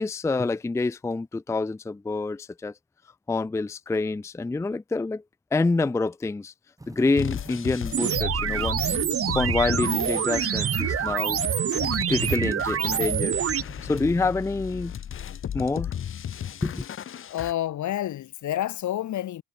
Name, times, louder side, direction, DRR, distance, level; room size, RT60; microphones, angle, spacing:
voice 1, 0.0-2.7 3.3-5.2 5.5-6.5 6.9-9.0 9.3-11.4 12.1-13.4 13.8-14.9 15.5-15.9 16.6-16.8, left 3 dB, 10° left, 0.4 m, -27 dB
sound 1, 6.8-14.3, right 2 dB, 10° right, 4.8 m, -44 dB
sound 2, 7.2-17.5, left 9 dB, 45° left, 0.8 m, -35 dB
sound 3, 7.9-13.6, right 9 dB, 50° right, 1.0 m, -26 dB
voice 2, 17.2-19.4, left 12 dB, 70° left, 2.3 m, -29 dB
cardioid pair, 90°, 30 cm